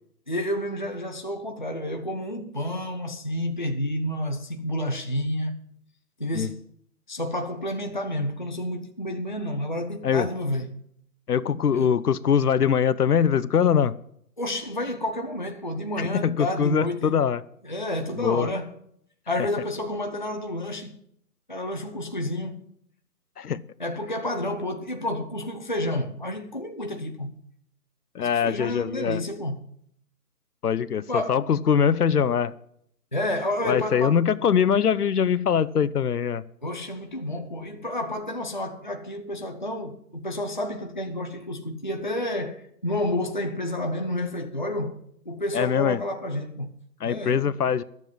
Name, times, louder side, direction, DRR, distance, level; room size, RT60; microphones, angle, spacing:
voice 1, 0.3-5.6 6.2-6.6 7.1-10.8 11.7-12.0 14.4-17.2 17.6-18.7 19.3-21.0 21.5-22.6 23.8-27.3 28.2-29.7 31.1-31.4 33.1-34.2 36.6-46.8 47.0-47.4, left 1 dB, 30° left, 0.5 m, -30 dB
voice 2, 11.3-14.0 16.0-17.4 18.2-18.5 23.4-23.6 28.1-29.2 30.6-32.5 33.6-36.4 45.5-46.0 47.0-47.8, left 7 dB, 70° left, 0.7 m, -22 dB
12.0 x 7.3 x 7.7 m
figure-of-eight pair, 165°, 48 cm